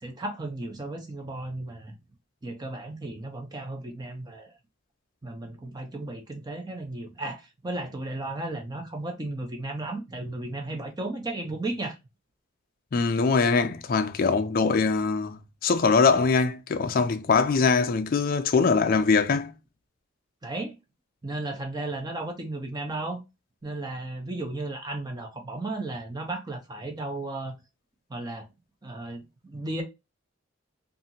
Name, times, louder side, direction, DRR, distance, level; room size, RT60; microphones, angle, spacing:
voice 1, 0.0-1.9 2.4-4.5 5.2-12.0 20.4-20.8 21.2-23.2 23.6-27.6 28.1-28.5 28.8-29.8, right 2 dB, 20° right, 0.5 m, -34 dB
voice 2, 12.9-19.5, left 4 dB, 40° left, 0.3 m, -22 dB
2.8 x 2.4 x 2.6 m
head